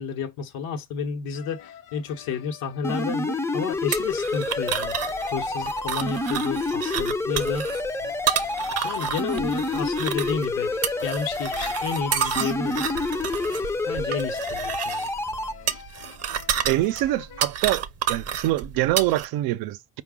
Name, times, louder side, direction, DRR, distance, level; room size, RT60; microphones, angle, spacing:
voice 1, 0.0-7.7 8.8-10.7 11.0-13.0 13.8-15.1, left 6 dB, 90° left, 0.9 m, -31 dB
sound 1, 1.3-17.5, left 9 dB, 65° left, 0.9 m, -46 dB
sound 2, 2.8-15.5, left 2 dB, 10° left, 0.4 m, -28 dB
sound 3, 3.9-19.3, right 9 dB, 45° right, 0.7 m, -30 dB
voice 2, 16.6-17.8 18.1-20.0, right 16 dB, 85° right, 0.5 m, -25 dB
4.8 x 2.2 x 3.6 m
cardioid pair, 120°, 35 cm